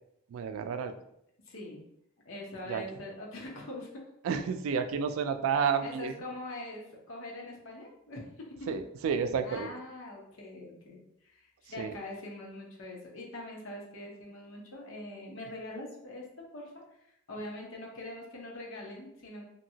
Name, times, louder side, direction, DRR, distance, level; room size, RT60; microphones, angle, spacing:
voice 1, 0.3-0.9 2.7-2.8 4.2-6.1 8.7-9.7 11.8-11.9, right 6 dB, 90° right, 9 dB, 0.3 m, -30 dB
voice 2, 1.5-1.8 2.2-4.1 5.8-8.7 9.5-16.3 16.5-16.7 17.3-19.5, left 1 dB, 70° left, -2 dB, 0.9 m, -43 dB
2.8 x 2.7 x 2.7 m, 0.76 s
head